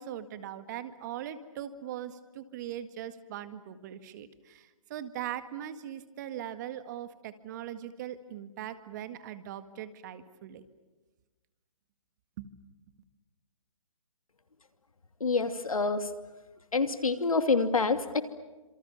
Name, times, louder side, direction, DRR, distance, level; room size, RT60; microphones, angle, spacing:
voice 1, 0.0-10.6 12.4-12.5, right 11 dB, 35° right, 11 dB, 1.9 m, -40 dB
voice 2, 15.2-16.1 16.7-18.2, left 4 dB, 90° left, 9 dB, 2.7 m, -27 dB
29.0 x 27.0 x 7.3 m, 1.2 s
hypercardioid pair, 150°, 17 cm